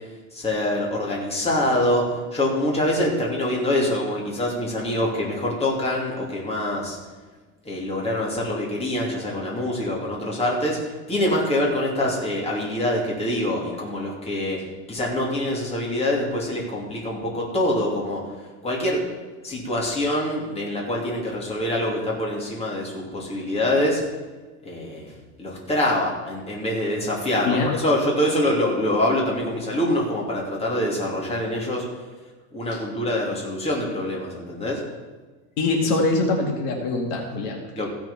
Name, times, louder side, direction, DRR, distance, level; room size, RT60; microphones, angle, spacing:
voice 1, 0.3-7.0 7.6-14.6 14.9-18.2 18.6-19.0 19.4-24.0 24.6-31.8 32.5-34.8 37.8-37.9, left 1 dB, 15° left, -3 dB, 2.8 m, -25 dB
voice 2, 35.6-37.9, left 3 dB, 60° left, 1 dB, 2.2 m, -23 dB
15.5 x 6.2 x 5.6 m, 1.3 s
supercardioid pair, 135°, 40 cm